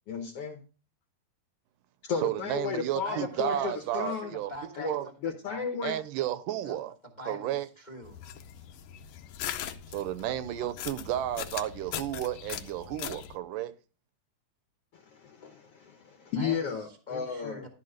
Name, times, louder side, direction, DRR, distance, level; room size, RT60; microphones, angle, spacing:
voice 1, 0.1-0.6 2.0-4.3 4.8-6.0 14.9-17.7, left 6 dB, 65° left, 1.5 m, -34 dB
voice 2, 2.2-4.5 4.8-5.1 5.8-6.9 7.3-7.7 9.9-13.8, right 12 dB, 80° right, 2.2 m, -32 dB
voice 3, 3.0-5.6 6.6-8.2 10.2-10.3 16.4-16.6 16.9-17.7, equal, 40° left, 0.6 m, -44 dB
sound 1, 8.0-13.4, left 10 dB, 85° left, 1.4 m, -40 dB
12.5 x 4.5 x 6.4 m
omnidirectional pair, 3.9 m